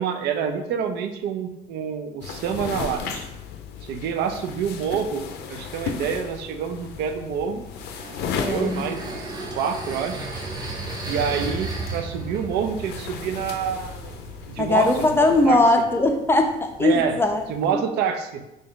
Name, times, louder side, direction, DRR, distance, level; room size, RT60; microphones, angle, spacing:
voice 1, 0.0-3.3 3.8-5.2 5.5-7.6 8.3-10.3 11.0-14.2 14.5-15.6 16.8-17.2 17.5-18.4, right 7 dB, 75° right, 6 dB, 0.4 m, -27 dB
sound 1, 2.2-15.5, left 6 dB, 75° left, 0.4 m, -36 dB
sound 2, 7.3-17.7, right 3 dB, 25° right, 0.7 m, -36 dB
voice 2, 8.4-8.8 14.6-17.8, left 2 dB, 15° left, 4 dB, 0.4 m, -20 dB
3.3 x 2.6 x 3.6 m, 0.94 s
cardioid pair, 110°, 17 cm